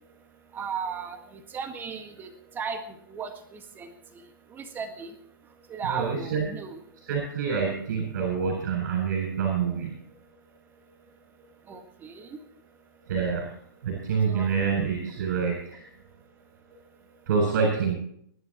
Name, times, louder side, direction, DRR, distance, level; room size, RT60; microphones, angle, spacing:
voice 1, 0.5-2.8 3.1-3.9 4.5-5.1 5.7-6.8 11.7-12.3 14.3-14.6, right 6 dB, 15° right, 6 dB, 1.8 m, -36 dB
voice 2, 5.8-6.5 7.1-9.9 13.1-13.4 13.8-15.8 17.3-18.0, right 5 dB, 55° right, 1 dB, 7.8 m, -26 dB
28.5 x 12.0 x 3.0 m, 0.66 s
hypercardioid pair, 130°, 12 cm